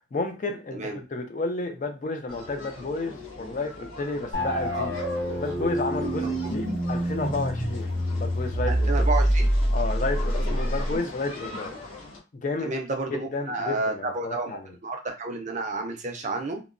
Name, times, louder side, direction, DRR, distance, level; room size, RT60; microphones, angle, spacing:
voice 1, 0.0-5.0 5.4-9.1 9.7-11.7 12.4-12.7 13.1-14.7, left 3 dB, 40° left, 6 dB, 0.4 m, -31 dB
sound 1, 2.3-12.2, left 3 dB, 75° left, 1.1 m, -42 dB
sound 2, 4.3-11.0, equal, 55° left, 1.3 m, -26 dB
voice 2, 8.7-9.5 12.6-14.5 14.8-16.6, right 2 dB, 35° right, 3 dB, 0.5 m, -30 dB
2.9 x 2.1 x 2.5 m, 0.30 s
head